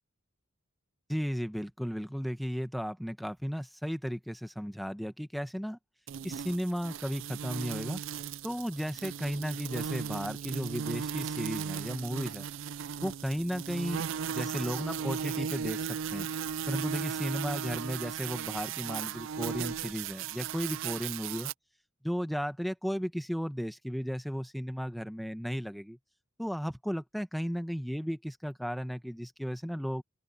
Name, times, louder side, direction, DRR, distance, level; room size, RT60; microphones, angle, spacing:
voice 1, 1.1-5.8 6.2-8.0 8.4-12.5 13.0-16.3 16.7-21.5 22.0-26.0 26.4-30.0, equal, ahead, 1.0 m, -35 dB
sound 1, 6.1-21.5, right 7 dB, 65° right, 0.4 m, -36 dB
open air
head